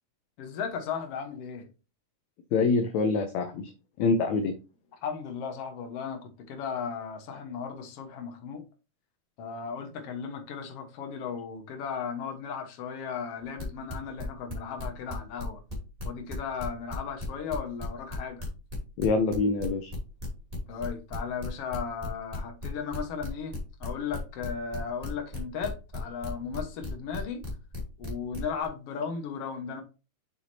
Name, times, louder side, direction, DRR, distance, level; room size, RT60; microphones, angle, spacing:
voice 1, 0.4-1.7 5.0-8.7 9.4-15.6 16.0-18.4 20.7-27.4 28.0-29.8, left 6 dB, 55° left, 2.1 m, -36 dB
voice 2, 2.5-3.7 4.0-4.5 19.0-19.9, left 4 dB, 70° left, 1.9 m, -25 dB
sound 1, 13.6-15.7 16.0-28.7, left 2 dB, 10° right, 2.6 m, -37 dB
7.0 x 6.6 x 2.8 m
omnidirectional pair, 3.7 m